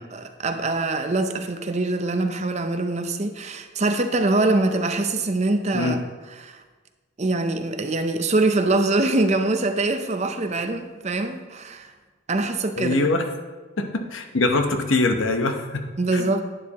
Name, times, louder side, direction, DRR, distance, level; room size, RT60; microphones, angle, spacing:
voice 1, 0.1-6.0 6.3-6.6 7.2-11.9 12.3-13.0 16.0-16.4, right 2 dB, 35° right, 0.6 m, -23 dB
voice 2, 12.8-13.2 13.8-15.8 16.1-16.3, left 2 dB, 75° left, 0.9 m, -23 dB
11.0 x 9.5 x 2.9 m
head